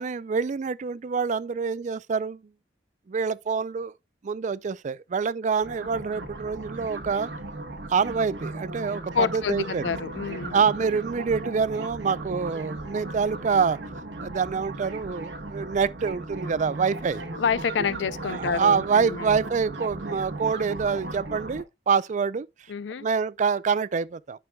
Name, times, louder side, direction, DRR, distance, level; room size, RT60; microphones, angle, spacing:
voice 1, 0.0-2.4 3.1-3.9 4.2-7.3 7.9-10.0 10.5-13.8 14.2-17.2 17.8-17.9 18.2-22.5 23.0-24.4, right 5 dB, 45° right, 0.4 m, -26 dB
sound 1, 5.6-21.6, right 2 dB, 75° right, 1.2 m, -37 dB
voice 2, 9.1-10.6 17.4-19.4 22.7-23.1, left 6 dB, 75° left, 0.4 m, -28 dB
9.3 x 6.1 x 2.2 m
head